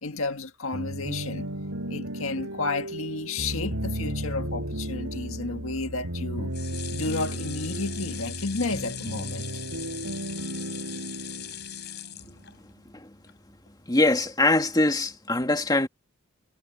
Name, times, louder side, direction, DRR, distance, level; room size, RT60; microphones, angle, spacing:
voice 1, 0.0-1.5 1.9-6.5 6.9-9.5, left 3 dB, 70° left, 1.9 m, -32 dB
cinematic grand piano mess gdfc, 0.7-12.4, right 1 dB, 85° right, 6.7 m, -34 dB
sound 1, 6.5-12.8 13.3-13.4 13.7-13.8, left 12 dB, 55° left, 6.6 m, -40 dB
voice 2, 13.9-15.9, left 2 dB, 20° left, 2.4 m, -23 dB
head